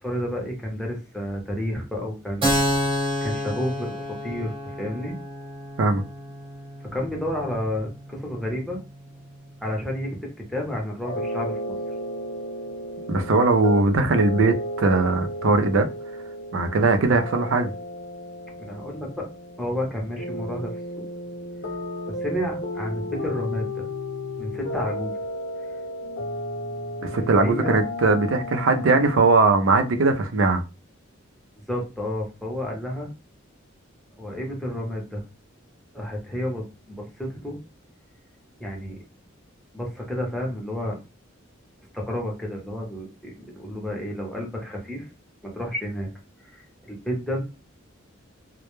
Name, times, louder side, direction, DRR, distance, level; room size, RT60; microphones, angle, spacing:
voice 1, 0.0-5.2 6.9-8.8 9.6-11.7 18.6-19.3 19.6-21.1 22.1-23.9 24.4-25.1 27.3-27.7 31.7-33.1 34.2-35.2 35.9-37.6 38.6-39.0 39.7-41.0 41.9-45.0 45.4-46.1 46.4-47.4, equal, ahead, 0.6 m, -31 dB
Keyboard (musical), 2.4-9.7, equal, 25° right, 1.0 m, -30 dB
sound 1, 11.0-29.2, left 1 dB, 60° left, 0.8 m, -33 dB
voice 2, 13.1-15.9 16.5-17.7 27.0-30.6, right 3 dB, 75° right, 0.4 m, -20 dB
2.1 x 2.1 x 3.0 m
head